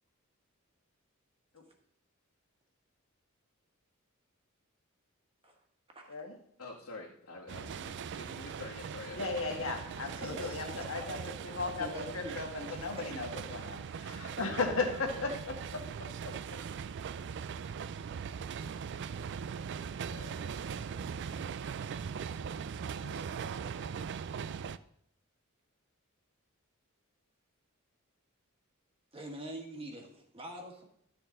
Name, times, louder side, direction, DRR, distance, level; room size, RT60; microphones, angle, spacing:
voice 1, 5.9-6.2 10.1-11.2 11.5-12.4 12.7-13.1 29.1-30.8, right 1 dB, 25° right, 2 dB, 1.6 m, -45 dB
voice 2, 6.6-10.1, left 3 dB, 85° left, -5 dB, 1.6 m, -48 dB
sound 1, 7.5-24.8, right 6 dB, 55° right, 0.4 m, -40 dB
voice 3, 9.1-15.8 20.1-20.4 23.0-23.2 23.5-23.9, left 4 dB, 65° left, 2 dB, 1.6 m, -36 dB
12.0 x 6.8 x 3.8 m, 0.71 s
head